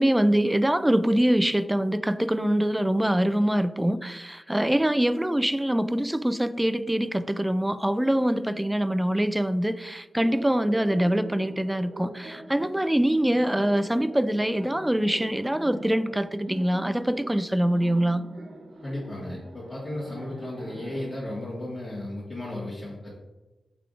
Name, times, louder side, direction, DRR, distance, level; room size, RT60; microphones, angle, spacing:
voice 1, 0.0-18.2, right 1 dB, 10° right, 0.3 m, -24 dB
Laughter, 10.2-21.1, right 1 dB, 85° right, 0.8 m, -43 dB
voice 2, 18.8-23.2, left 1 dB, 50° left, 1.3 m, -35 dB
5.8 x 3.4 x 2.5 m
cardioid pair, 45°, 0 cm